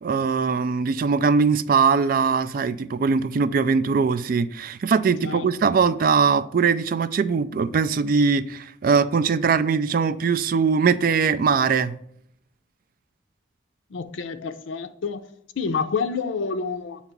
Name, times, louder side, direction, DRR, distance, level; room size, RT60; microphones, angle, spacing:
voice 1, 0.0-11.9, right 5 dB, 45° right, 0.3 m, -21 dB
voice 2, 13.9-15.2 15.6-17.0, left 5 dB, 85° left, 0.5 m, -28 dB
8.0 x 2.9 x 5.9 m
head